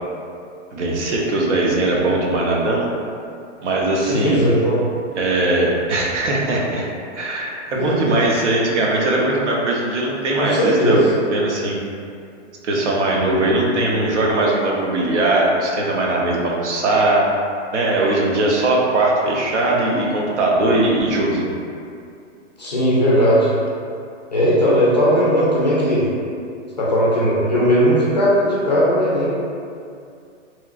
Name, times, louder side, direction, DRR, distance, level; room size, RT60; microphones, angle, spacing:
voice 1, 0.7-2.9 3.6-4.4 5.1-6.9 7.2-11.0 11.3-11.8 12.6-17.2 17.7-21.5, right 2 dB, 70° right, -2 dB, 0.6 m, -20 dB
voice 2, 4.0-4.8 7.7-8.1 10.4-11.1 22.6-23.5 24.3-26.1 26.8-29.3, equal, 40° left, -7 dB, 0.4 m, -17 dB
2.9 x 2.4 x 2.4 m, 2.4 s
hypercardioid pair, 180°, 37 cm